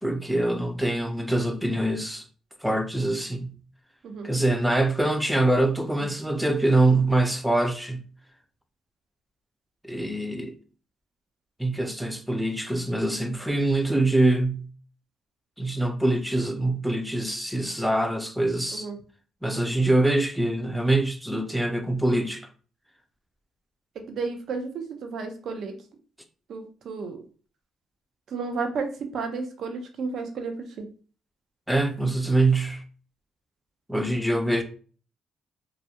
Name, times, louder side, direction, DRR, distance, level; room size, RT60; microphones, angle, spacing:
voice 1, 0.0-2.2 2.6-3.5 4.2-8.0 9.8-10.5 11.6-14.7 15.6-18.9 19.4-22.4 31.7-32.8 33.9-34.6, right 2 dB, ahead, 0.4 m, -24 dB
voice 2, 24.1-25.8 26.5-27.2 28.3-30.9, right 4 dB, 65° right, 0.5 m, -32 dB
2.3 x 2.1 x 2.8 m
cardioid pair, 90°, 0 cm